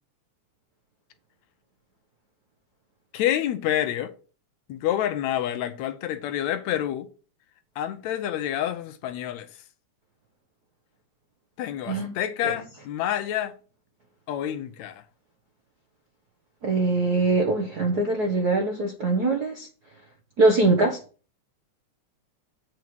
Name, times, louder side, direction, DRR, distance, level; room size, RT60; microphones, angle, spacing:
voice 1, 3.1-4.1 4.7-7.1 7.8-9.5 11.6-13.5 14.3-15.0, left 11 dB, 75° left, 1.9 m, -28 dB
voice 2, 16.6-19.7 20.4-21.0, right 3 dB, 60° right, 1.0 m, -22 dB
8.1 x 4.8 x 6.1 m
omnidirectional pair, 3.3 m